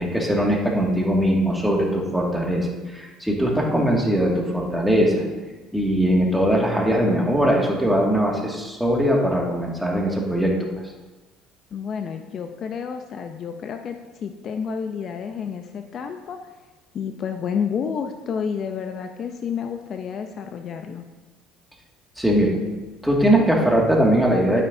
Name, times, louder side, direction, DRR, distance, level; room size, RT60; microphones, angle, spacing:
voice 1, 0.0-5.2 5.7-10.5 22.2-22.6 23.0-24.6, equal, ahead, -2 dB, 2.1 m, -20 dB
voice 2, 11.7-16.6 16.9-21.0, left 7 dB, 50° left, 6 dB, 0.6 m, -30 dB
11.0 x 9.6 x 2.7 m, 1.2 s
supercardioid pair, 100°, 0 cm